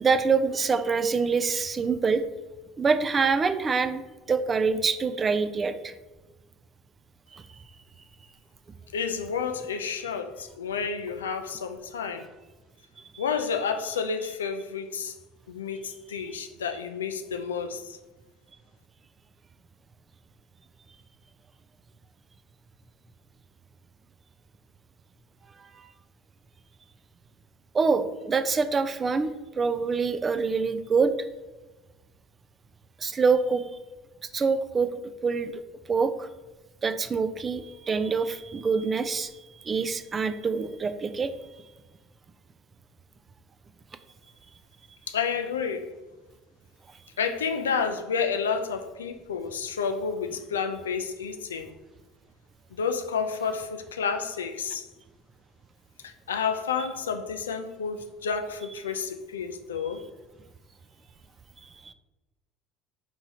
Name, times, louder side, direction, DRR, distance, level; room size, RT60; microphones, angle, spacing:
voice 1, 0.0-2.2 2.8-4.0 4.3-5.9 7.3-7.4 13.1-13.2 27.7-29.3 29.6-31.1 33.0-33.6 34.3-34.9 35.2-35.6 35.9-36.3 36.8-39.3 39.6-41.3 61.9-62.0, right 5 dB, 30° right, 11 dB, 0.3 m, -25 dB
voice 2, 8.9-12.3 13.2-15.1 15.5-18.0 45.1-45.9 47.2-51.7 52.7-54.9 56.0-60.0, left 6 dB, 80° left, 7 dB, 0.3 m, -30 dB
4.7 x 3.0 x 2.7 m, 1.2 s
figure-of-eight pair, 65°, 0 cm